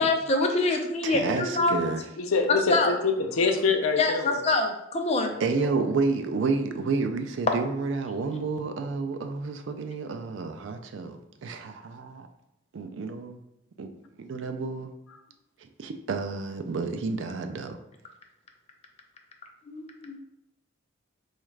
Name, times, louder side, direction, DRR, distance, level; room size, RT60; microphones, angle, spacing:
voice 1, 0.0-1.8 2.7-2.9 4.0-5.3 19.7-20.2, left 2 dB, 30° left, 0.4 m, -25 dB
voice 2, 1.0-2.0 5.4-12.3 12.7-13.4 13.8-13.9 14.2-14.9 15.8-17.8, right 4 dB, 60° right, 0.4 m, -30 dB
voice 3, 2.2-2.8 3.0-4.4 5.3-5.7, left 4 dB, 90° left, 0.5 m, -25 dB
4.0 x 2.4 x 3.2 m
head